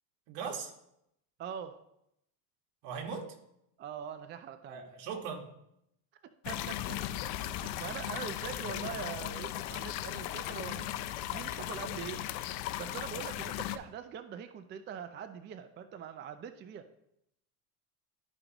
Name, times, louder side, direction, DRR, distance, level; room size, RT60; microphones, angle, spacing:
voice 1, 0.3-0.7 2.8-3.4 4.7-5.5, right 5 dB, 65° right, 3 dB, 1.7 m, -39 dB
voice 2, 1.4-1.8 3.8-4.9 6.4-7.0 7.5-12.2 12.8-16.9, right 8 dB, 25° right, 9 dB, 0.4 m, -43 dB
sound 1, 6.4-13.8, left 13 dB, 65° left, 0.7 m, -37 dB
12.5 x 5.0 x 3.0 m, 0.79 s
supercardioid pair, 115°, 46 cm